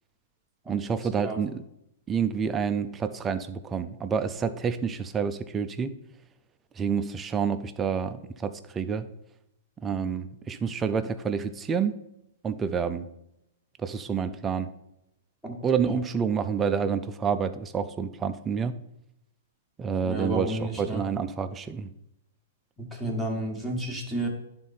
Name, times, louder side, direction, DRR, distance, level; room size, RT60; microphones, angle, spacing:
voice 1, 0.7-1.6 2.1-5.9 6.8-9.0 9.8-12.0 12.4-13.1 13.8-14.7 15.6-18.8 19.8-21.9, right 6 dB, 15° right, 10 dB, 0.4 m, -28 dB
voice 2, 20.0-21.0 22.8-24.3, right 1 dB, 5° left, 0 dB, 1.4 m, -31 dB
11.0 x 3.7 x 4.1 m, 0.81 s
hypercardioid pair, 145°, 0 cm